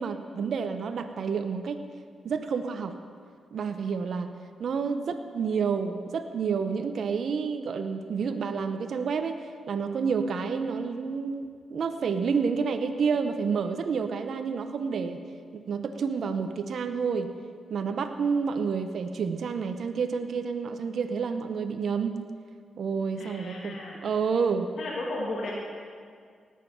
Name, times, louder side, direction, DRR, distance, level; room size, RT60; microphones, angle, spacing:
voice 1, 0.0-1.8 2.2-2.9 3.5-4.3 4.6-15.2 15.5-17.3 17.7-22.2 22.8-23.8 24.0-24.7, right 5 dB, 70° right, 8 dB, 0.8 m, -29 dB
voice 2, 23.2-24.0 24.8-25.5, left 2 dB, 75° left, -3 dB, 2.2 m, -34 dB
19.0 x 7.4 x 5.8 m, 2.1 s
cardioid pair, 60°, 0 cm